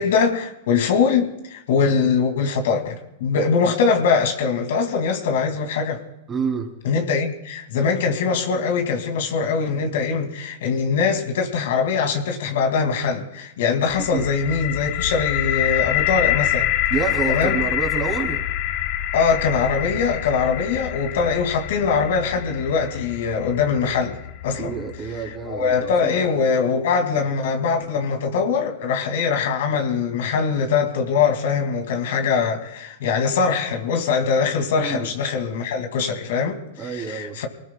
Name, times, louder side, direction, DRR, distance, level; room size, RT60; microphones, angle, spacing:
voice 1, 0.0-6.0 6.8-16.7 17.3-17.6 19.1-24.2 24.4-24.7 25.5-36.6 37.1-37.5, left 5 dB, 70° left, 4 dB, 2.4 m, -22 dB
voice 2, 6.3-6.8 14.0-14.3 16.9-18.4 24.6-26.2 34.8-35.1 36.8-37.4, right 6 dB, 25° right, 1 dB, 3.4 m, -28 dB
sound 1, 13.9-25.7, left 12 dB, 55° left, 0.9 m, -26 dB
24.5 x 19.0 x 2.3 m, 0.86 s
hypercardioid pair, 105°, 0 cm